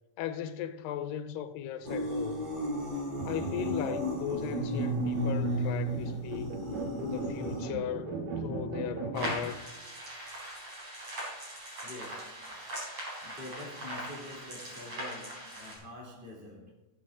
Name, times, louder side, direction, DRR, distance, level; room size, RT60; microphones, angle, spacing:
voice 1, 0.2-2.5 3.2-6.5 7.0-8.1 8.4-9.7, left 10 dB, 85° left, 2.2 m, -37 dB
sound 1, 1.8-7.7, left 1 dB, 15° right, 1.9 m, -36 dB
sound 2, 3.2-9.4, right 2 dB, 75° right, 3.2 m, -34 dB
sound 3, 9.1-15.8, right 1 dB, 40° right, 5.1 m, -41 dB
voice 2, 11.8-12.6 13.2-16.7, left 1 dB, 40° left, 0.7 m, -46 dB
18.5 x 6.6 x 3.7 m
omnidirectional pair, 4.0 m